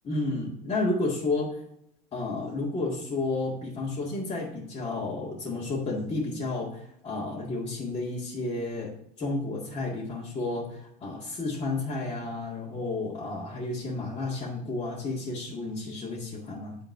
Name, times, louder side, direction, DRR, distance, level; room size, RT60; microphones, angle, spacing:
voice 1, 0.0-1.5 2.1-16.8, left 2 dB, 30° left, -6 dB, 2.0 m, -31 dB
9.1 x 3.8 x 4.8 m, 0.74 s
supercardioid pair, 110°, 18 cm